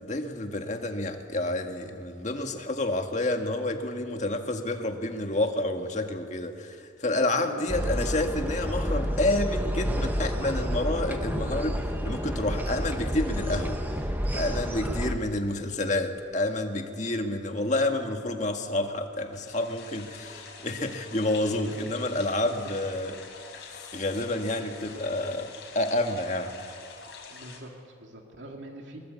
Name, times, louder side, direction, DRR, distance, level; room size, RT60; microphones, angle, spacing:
voice 1, 0.0-13.8 14.3-23.2 23.5-26.6, left 2 dB, 40° left, 1.8 m, -29 dB
voice 2, 7.3-7.7 21.6-22.0 22.5-22.6 24.6-24.7 27.3-29.0, right 1 dB, 70° right, 2.4 m, -44 dB
sound 1, 7.7-15.1, equal, 10° right, 1.4 m, -29 dB
sound 2, 19.3-27.6, left 5 dB, 60° left, 4.6 m, -46 dB
22.5 x 22.0 x 8.4 m
head